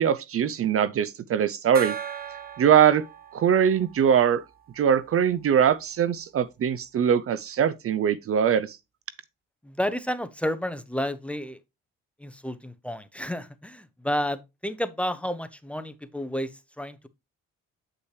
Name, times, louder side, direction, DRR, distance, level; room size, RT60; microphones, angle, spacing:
voice 1, 0.0-2.0 2.6-3.0 3.3-4.4 4.8-8.8, right 8 dB, 50° right, 0.5 m, -22 dB
Gong, 1.7-5.0, right 7 dB, 30° right, 1.0 m, -38 dB
voice 2, 9.6-11.6 12.2-17.1, equal, 5° left, 0.7 m, -31 dB
8.3 x 5.4 x 3.1 m
cardioid pair, 90°, 30 cm